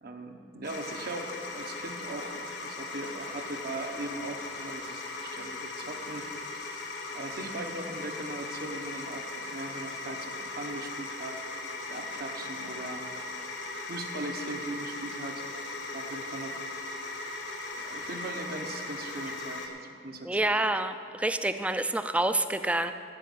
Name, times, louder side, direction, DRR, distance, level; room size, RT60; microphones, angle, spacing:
voice 1, 0.0-6.3 6.5-11.4 11.9-13.0 13.9-15.5 15.9-16.7 17.8-19.7 20.0-20.5, right 2 dB, 60° right, 4 dB, 1.0 m, -39 dB
sound 1, 0.6-19.7, left 2 dB, 70° left, 1.4 m, -38 dB
voice 2, 20.2-22.9, right 1 dB, 5° right, 9 dB, 0.4 m, -28 dB
14.5 x 5.2 x 7.7 m, 2.6 s
head